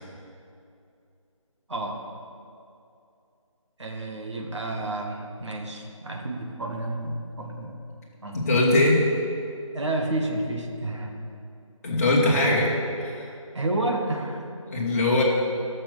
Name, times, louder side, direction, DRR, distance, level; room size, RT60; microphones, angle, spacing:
voice 1, 1.7-2.0 3.8-7.8 8.2-8.4 9.7-11.2 13.5-14.4, right 2 dB, 55° right, 1 dB, 1.9 m, -30 dB
voice 2, 8.3-9.0 11.8-12.7 13.0-13.3 14.7-15.2, left 2 dB, 25° left, -4 dB, 2.1 m, -21 dB
12.5 x 6.8 x 6.6 m, 2.6 s
figure-of-eight pair, 165°, 17 cm